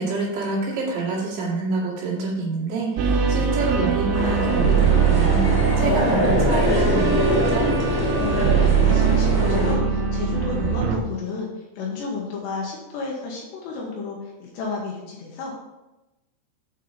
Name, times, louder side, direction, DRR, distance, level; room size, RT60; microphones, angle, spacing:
voice 1, 0.0-5.4 5.8-7.7, right 3 dB, 60° right, -6 dB, 4.2 m, -27 dB
sound 1, 3.0-11.0, right 6 dB, 85° right, 3.7 m, -21 dB
sound 2, 4.1-9.7, left 1 dB, 15° right, 0.5 m, -23 dB
voice 2, 8.2-15.6, left 4 dB, 70° left, -2 dB, 3.0 m, -32 dB
8.7 x 5.5 x 5.4 m, 1.0 s
omnidirectional pair, 6.0 m